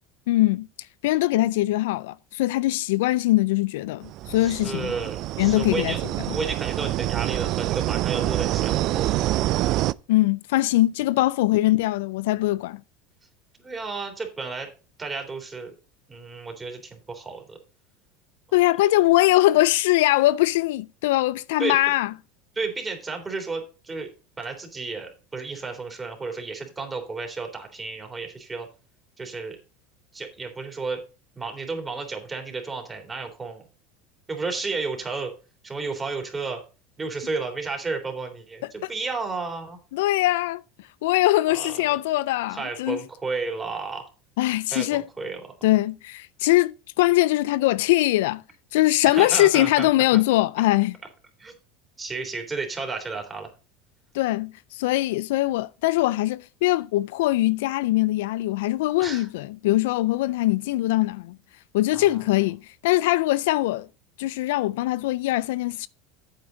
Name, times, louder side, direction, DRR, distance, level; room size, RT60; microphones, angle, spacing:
voice 1, 0.3-0.7 1.0-4.9 5.4-5.9 6.3-6.4 10.1-12.8 18.5-22.1 39.9-40.6 41.0-43.0 44.4-45.0 45.6-48.4 48.7-51.0 54.1-61.4 61.7-63.9 64.2-65.9, left 17 dB, 80° left, 0.3 m, -22 dB
sound 1, 4.0-9.9, right 16 dB, 55° right, 0.3 m, -26 dB
voice 2, 4.4-6.0 6.3-9.3 13.6-14.7 15.0-15.7 16.1-17.6 18.5-18.6 21.6-21.7 22.5-24.1 24.4-28.7 29.2-29.6 30.1-31.0 31.3-33.6 34.3-35.3 35.6-36.6 37.0-39.8 41.5-41.9 42.5-44.1 44.7-45.4 49.1-50.2 51.4-51.5 52.0-53.5 59.0-59.3 61.9-62.2, right 4 dB, 20° right, 3.3 m, -32 dB
8.9 x 7.9 x 3.9 m
supercardioid pair, 105°, 0 cm